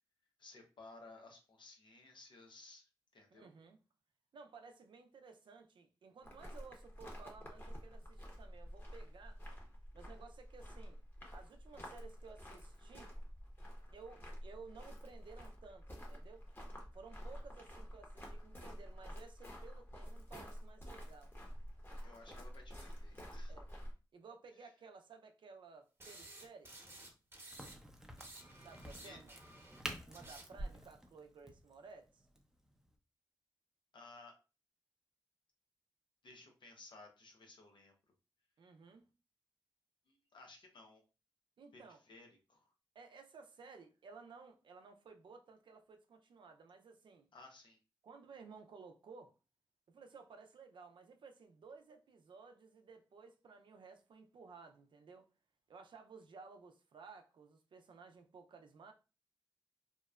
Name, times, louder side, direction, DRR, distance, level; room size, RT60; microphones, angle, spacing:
voice 1, 0.4-2.8 3.1-3.5 22.0-23.5 29.0-29.2 33.9-34.3 36.2-37.9 40.1-41.0 42.1-42.7 47.3-47.8, left 3 dB, 75° left, 0.7 m, -57 dB
voice 2, 3.3-3.8 4.3-9.4 9.9-11.0 11.3-13.1 13.9-16.4 16.9-21.3 23.5-23.7 24.1-27.1 28.6-29.3 30.1-32.3 38.6-39.0 41.6-42.0 42.9-47.3 48.0-49.3 49.9-55.3 55.7-58.9, right 5 dB, 75° right, 0.4 m, -56 dB
sound 1, 6.2-23.9, equal, 25° left, 0.9 m, -49 dB
sound 2, 26.0-27.8 28.0-30.6, right 1 dB, 30° right, 0.9 m, -51 dB
Crack, 27.5-33.0, right 1 dB, 5° right, 0.6 m, -51 dB
2.9 x 2.0 x 2.3 m
cardioid pair, 40°, 8 cm